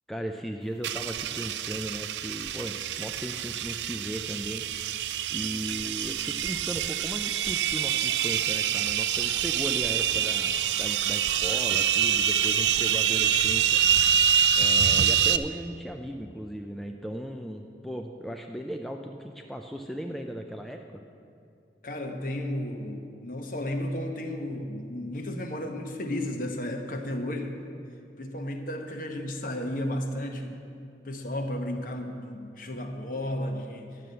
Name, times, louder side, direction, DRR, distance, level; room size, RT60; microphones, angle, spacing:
voice 1, 0.1-14.1 14.6-21.0, equal, ahead, 3 dB, 0.4 m, -37 dB
sound 1, 0.8-15.4, right 9 dB, 80° right, 0.4 m, -26 dB
voice 2, 21.8-27.6 28.2-30.6 31.0-34.0, left 1 dB, 50° left, 5 dB, 1.0 m, -33 dB
11.0 x 6.9 x 7.6 m, 2.5 s
head